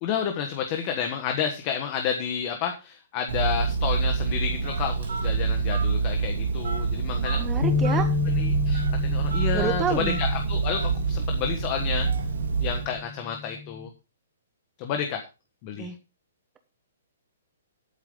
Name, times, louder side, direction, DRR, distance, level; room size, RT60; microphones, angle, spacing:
voice 1, 0.0-7.7 8.3-12.1 12.6-13.9 14.8-15.2 15.6-15.9, left 7 dB, 25° left, 4 dB, 1.3 m, -30 dB
Telephone, 3.3-13.0, right 5 dB, 85° right, 2.8 m, -26 dB
voice 2, 7.1-8.1 9.5-10.2 15.8-16.0, right 7 dB, 10° right, 8 dB, 1.1 m, -29 dB
sound 1, 7.6-13.9, left 5 dB, 70° left, 2.8 m, -31 dB
11.0 x 9.2 x 3.8 m, 0.30 s
hypercardioid pair, 175°, 0 cm